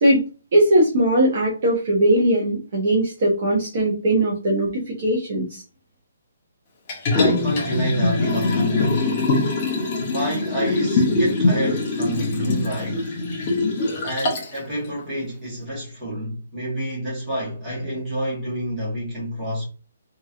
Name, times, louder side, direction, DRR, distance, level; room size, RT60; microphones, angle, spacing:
voice 1, 0.5-5.6, right 1 dB, 30° right, 0.8 m, -19 dB
Liquid, 6.9-14.6 15.0-15.1, left 2 dB, 20° left, 0.7 m, -22 dB
voice 2, 7.1-9.4 10.1-13.1 14.0-19.6, equal, 10° right, 1.2 m, -28 dB
3.0 x 2.8 x 2.4 m
hypercardioid pair, 180°, 0 cm